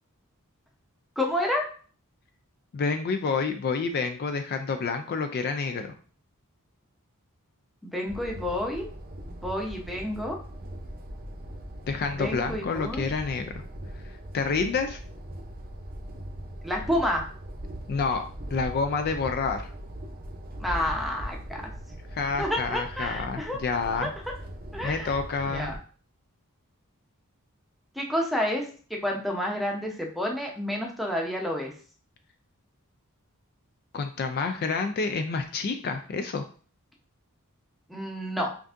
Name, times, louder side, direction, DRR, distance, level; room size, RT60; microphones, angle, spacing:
voice 1, 1.2-1.7 7.8-8.9 9.3-10.4 12.1-13.0 16.6-17.2 20.6-21.6 22.4-23.6 24.0-24.1 24.7-25.1 25.5-25.7 27.9-31.7 37.9-38.5, left 1 dB, ahead, 0 dB, 0.7 m, -29 dB
voice 2, 2.7-5.9 11.8-13.6 14.3-15.0 17.9-18.2 18.5-19.7 22.1-24.1 24.8-25.7 33.9-36.5, left 4 dB, 45° left, 7 dB, 0.3 m, -28 dB
sound 1, 8.1-25.8, right 1 dB, 40° right, 0.6 m, -40 dB
5.8 x 2.6 x 2.5 m, 0.41 s
head